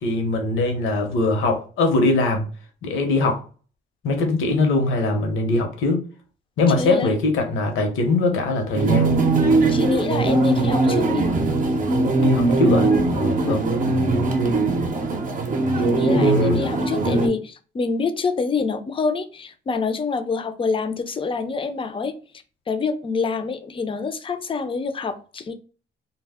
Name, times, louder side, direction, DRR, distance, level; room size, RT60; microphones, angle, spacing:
voice 1, 0.0-2.5 2.8-3.4 4.0-6.0 6.6-9.1 12.2-13.6 16.1-16.6, left 2 dB, 80° left, 0.8 m, -21 dB
voice 2, 6.8-7.2 9.7-11.3 13.5-13.8 15.8-22.2 22.7-25.5, left 4 dB, 25° left, 0.4 m, -26 dB
sound 1, 8.8-17.3, right 3 dB, 40° right, 0.6 m, -20 dB
2.1 x 2.0 x 3.4 m
cardioid pair, 90°, 20 cm